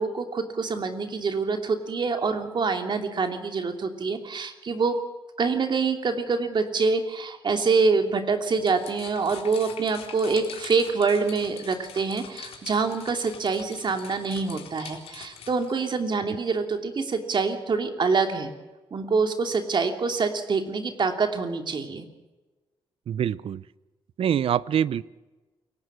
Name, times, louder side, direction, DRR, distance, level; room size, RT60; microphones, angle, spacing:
voice 1, 0.0-5.0 5.4-18.5 18.9-22.1, right 4 dB, 50° right, 6 dB, 2.8 m, -26 dB
sound 1, 8.5-15.7, left 8 dB, 80° left, 3.8 m, -44 dB
voice 2, 23.1-23.6 24.2-25.0, right 9 dB, 70° right, 20 dB, 0.7 m, -24 dB
28.5 x 17.0 x 6.2 m, 1.2 s
cardioid pair, 80°, 10 cm